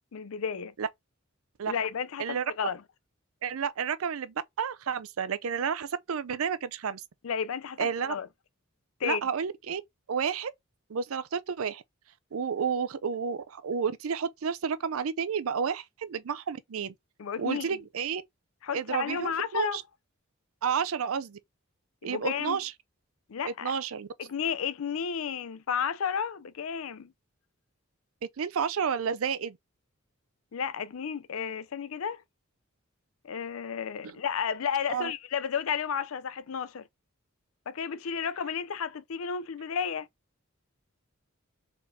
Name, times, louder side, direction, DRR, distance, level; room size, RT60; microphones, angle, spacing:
voice 1, 0.1-0.7 1.7-2.8 7.2-8.3 9.0-9.2 17.2-17.8 18.6-19.8 22.0-22.6 23.3-23.8 24.2-27.1 30.5-32.2 33.2-36.8 37.7-40.1, left 7 dB, 80° left, 0.5 m, -32 dB
voice 2, 3.4-7.0 7.8-8.1 9.0-9.8 10.1-10.5 10.9-11.8 12.3-16.9 17.4-18.2 18.7-19.8 20.6-21.4 22.0-22.7 23.4-24.1 28.4-29.6 34.0-34.1 34.9-35.1, right 6 dB, 80° right, 0.5 m, -31 dB
4.3 x 3.7 x 2.6 m
head